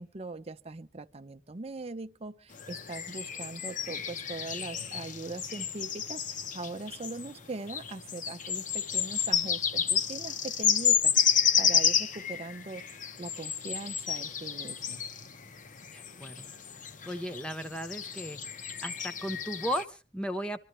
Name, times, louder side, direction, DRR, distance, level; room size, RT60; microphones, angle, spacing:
voice 1, 0.0-11.1 11.6-12.8 13.2-15.0, right 3 dB, 35° right, 0.7 m, -41 dB
sound 1, 2.5-19.8, left 8 dB, 45° left, 0.9 m, -31 dB
voice 2, 15.9-16.5 17.0-18.4 18.8-20.6, equal, 5° left, 0.8 m, -35 dB
25.5 x 12.5 x 3.1 m
head